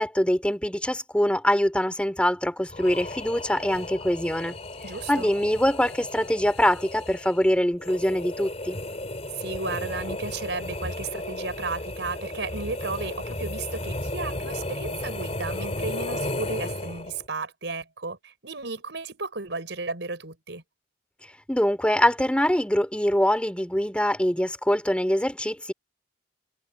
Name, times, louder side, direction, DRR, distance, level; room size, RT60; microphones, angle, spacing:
voice 1, 0.0-4.5 5.1-8.8 21.5-25.7, equal, 5° left, 3.4 m, -24 dB
sound 1, 2.7-17.3, left 1 dB, 35° left, 3.9 m, -34 dB
voice 2, 4.8-5.3 9.4-20.6, right 3 dB, 90° right, 4.5 m, -34 dB
head